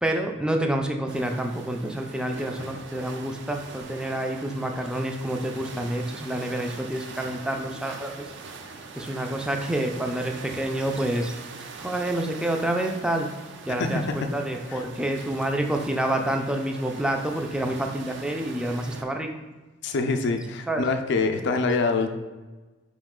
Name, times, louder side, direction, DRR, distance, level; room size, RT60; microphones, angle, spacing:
voice 1, 0.0-8.3 9.0-11.3 11.8-13.3 13.7-19.3 20.7-20.8, right 1 dB, 5° right, 3 dB, 0.4 m, -28 dB
sound 1, 1.1-19.0, right 4 dB, 60° right, 0.5 m, -42 dB
voice 2, 13.8-14.3 14.7-14.8 19.8-22.1, left 3 dB, 60° left, 7 dB, 0.4 m, -25 dB
4.8 x 3.0 x 3.6 m, 1.2 s
head